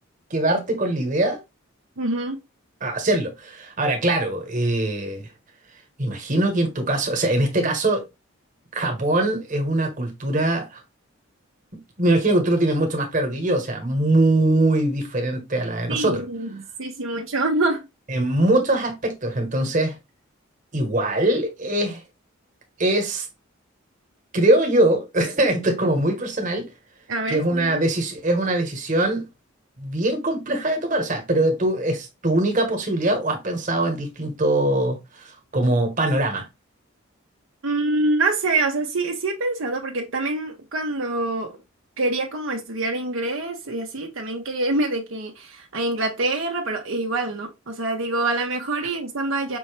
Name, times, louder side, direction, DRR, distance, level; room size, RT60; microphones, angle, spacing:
voice 1, 0.3-1.4 2.8-5.3 6.0-8.0 8.7-10.8 12.0-16.2 18.1-20.0 20.7-22.0 22.8-23.3 24.3-26.7 27.3-29.2 29.8-35.0 35.5-36.5, right 1 dB, 40° right, 1.3 m, -22 dB
voice 2, 2.0-2.4 15.9-17.8 27.1-27.8 37.6-41.5 42.0-49.6, right 2 dB, 70° right, 0.8 m, -25 dB
5.4 x 2.8 x 3.3 m
head